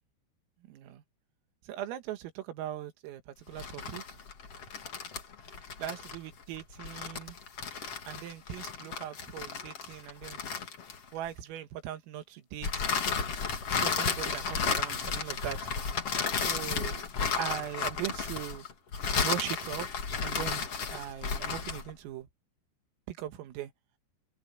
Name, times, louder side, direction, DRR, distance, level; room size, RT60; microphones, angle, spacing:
voice 1, 1.7-4.0 5.8-7.4 8.1-10.4 11.1-12.9 13.8-15.7 16.5-17.1 17.4-18.6 19.2-19.9 20.2-22.3 23.1-23.7, right 12 dB, 85° right, 4.4 m, -39 dB
sound 1, 3.5-11.3 12.6-21.9, left 6 dB, 40° left, 2.3 m, -33 dB
omnidirectional pair, 5.9 m